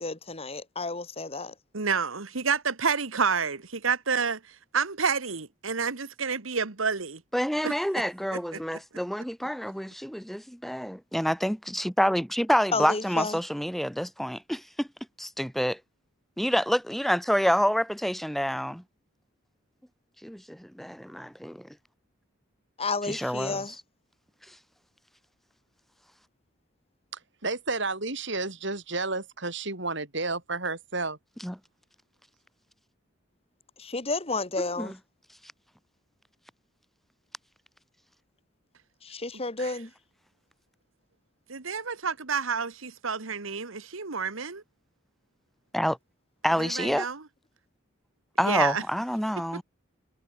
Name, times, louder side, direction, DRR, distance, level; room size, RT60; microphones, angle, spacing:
voice 1, 0.0-1.5 12.7-13.4 22.8-23.7 33.8-34.9 39.0-39.9, left 3 dB, 30° left, 2.1 m, -31 dB
voice 2, 1.7-7.2 7.6-7.7 8.3-8.6 39.6-39.7 41.5-44.6 46.6-47.2 48.4-48.8 49.5-49.6, right 5 dB, 85° right, 1.6 m, -29 dB
voice 3, 7.3-14.9 15.2-15.8 16.4-18.8 20.2-21.7 23.1-23.6 31.4-31.5 34.8-34.9 45.7-46.0 46.4-47.1 48.4-49.6, equal, ahead, 1.7 m, -27 dB
voice 4, 27.1-31.2, right 3 dB, 60° right, 5.7 m, -31 dB
head